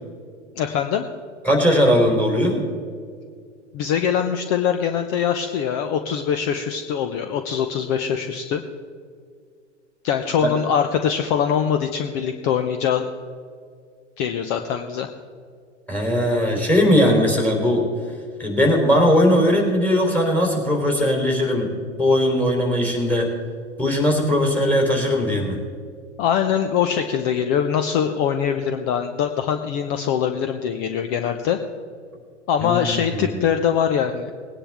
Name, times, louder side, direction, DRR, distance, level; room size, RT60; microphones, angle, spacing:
voice 1, 0.6-1.0 3.7-8.6 10.0-13.1 14.2-15.1 26.2-31.6 32.5-34.3, left 8 dB, 40° left, 7 dB, 0.9 m, -23 dB
voice 2, 1.4-2.6 10.4-10.5 15.9-17.8 18.4-21.7 22.0-23.3 23.8-25.6 32.6-33.4, equal, 5° left, -1 dB, 3.6 m, -19 dB
20.0 x 10.0 x 3.6 m, 2.1 s
hypercardioid pair, 105°, 36 cm